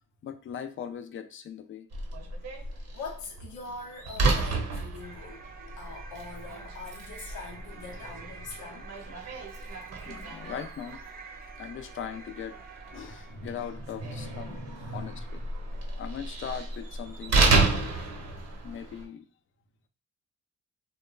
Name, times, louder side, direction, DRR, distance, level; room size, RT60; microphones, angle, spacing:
voice 1, 0.2-1.9 5.6-5.8 10.1-11.0 11.6-12.6 12.9-14.6 14.9-15.4 16.0-18.1 18.6-19.3, left 8 dB, 45° left, 0.4 m, -39 dB
Slam, 1.9-19.1, right 3 dB, 60° right, 0.7 m, -32 dB
voice 2, 2.6-5.4 5.7-9.2 12.9-15.2 15.5-16.0, left 2 dB, 85° left, 0.7 m, -43 dB
sound 1, 4.9-13.5, right 4 dB, 30° right, 0.4 m, -47 dB
2.9 x 2.1 x 2.3 m
cardioid pair, 90°, 30 cm